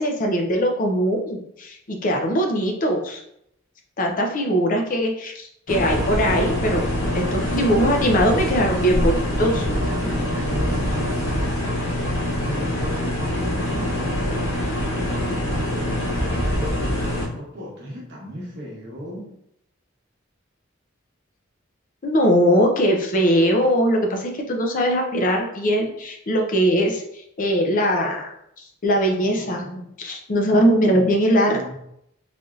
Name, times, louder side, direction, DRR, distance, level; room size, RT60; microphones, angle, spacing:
voice 1, 0.0-3.2 4.0-6.8 7.1-9.5 22.0-27.0 27.4-28.3 28.8-29.6 30.0-31.7, equal, 45° left, 2 dB, 0.5 m, -21 dB
sound 1, 5.7-17.3, left 1 dB, 70° left, 0.8 m, -24 dB
voice 2, 9.4-12.1 12.4-14.2 14.9-19.3 29.2-29.9 31.5-31.7, equal, 60° right, -2 dB, 1.0 m, -36 dB
3.4 x 2.6 x 2.4 m, 0.74 s
head